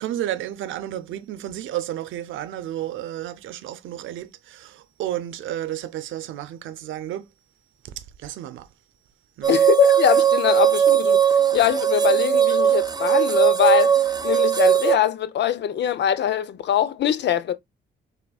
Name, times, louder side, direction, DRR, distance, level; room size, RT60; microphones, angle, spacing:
voice 1, 0.0-7.3 7.8-8.7 9.4-9.6, right 12 dB, 80° right, 0.7 m, -32 dB
sound 1, 9.4-14.9, right 9 dB, 20° right, 0.6 m, -19 dB
voice 2, 9.5-17.5, left 10 dB, 60° left, 0.7 m, -22 dB
6.0 x 3.7 x 2.3 m
cardioid pair, 90°, 20 cm